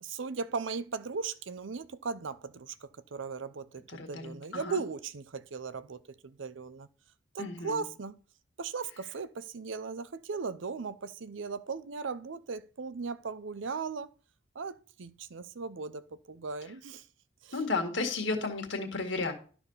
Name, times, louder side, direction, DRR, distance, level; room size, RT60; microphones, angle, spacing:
voice 1, 0.0-6.9 7.3-8.2 8.6-14.1 14.6-17.0 17.4-17.5 18.4-18.5, right 5 dB, 75° right, 0.6 m, -38 dB
voice 2, 3.9-4.8 7.4-7.8 17.5-19.3, left 3 dB, 65° left, 1.9 m, -33 dB
12.0 x 4.2 x 5.6 m
head